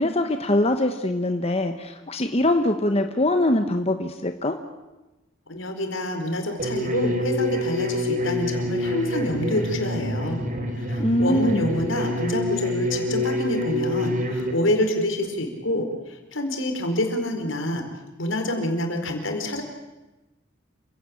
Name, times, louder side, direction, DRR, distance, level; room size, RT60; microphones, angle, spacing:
voice 1, 0.0-4.6 11.0-11.6, left 1 dB, 30° left, 7 dB, 1.1 m, -23 dB
voice 2, 5.5-10.4 10.8-17.8 18.2-19.6, left 1 dB, 80° left, 4 dB, 4.6 m, -27 dB
sound 1, 6.6-14.5, left 1 dB, 45° right, 3.7 m, -27 dB
28.5 x 17.0 x 8.6 m, 1.1 s
head